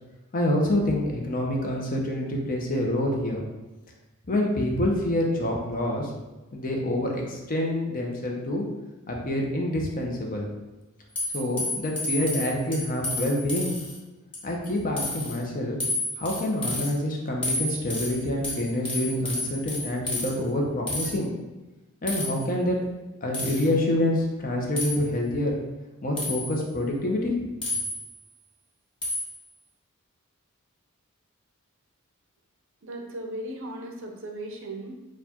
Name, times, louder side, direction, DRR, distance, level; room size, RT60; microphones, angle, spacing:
voice 1, 0.3-3.4 4.3-6.1 6.5-8.6 9.1-10.5 11.3-13.7 14.4-15.8 16.2-21.3 22.0-22.8 23.2-25.6 26.0-27.4, left 1 dB, 40° left, 0 dB, 0.8 m, -27 dB
sound 1, 11.2-14.0 14.3-14.7 15.0-15.4 15.8-16.9 17.4-20.3 20.9-21.1 22.1-22.4 23.3-23.7 24.8-25.0 26.2-26.6 27.6-28.2 29.0-29.4, left 2 dB, 25° left, 1.0 m, -31 dB
voice 2, 32.8-34.9, right 1 dB, 60° right, 2 dB, 0.7 m, -37 dB
4.4 x 2.4 x 4.3 m, 1.1 s
head